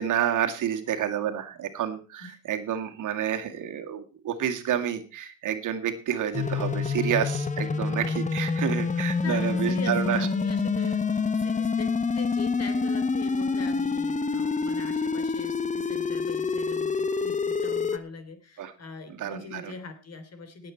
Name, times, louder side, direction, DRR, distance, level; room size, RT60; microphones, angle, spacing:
voice 1, 0.0-10.2 18.6-18.7 19.2-19.7, right 9 dB, 55° right, 6 dB, 2.0 m, -29 dB
sound 1, 6.3-18.0, left 4 dB, 20° left, 1.1 m, -27 dB
voice 2, 9.2-20.7, left 4 dB, 45° left, 10 dB, 3.3 m, -42 dB
18.5 x 8.1 x 4.4 m, 0.34 s
supercardioid pair, 80°, 36 cm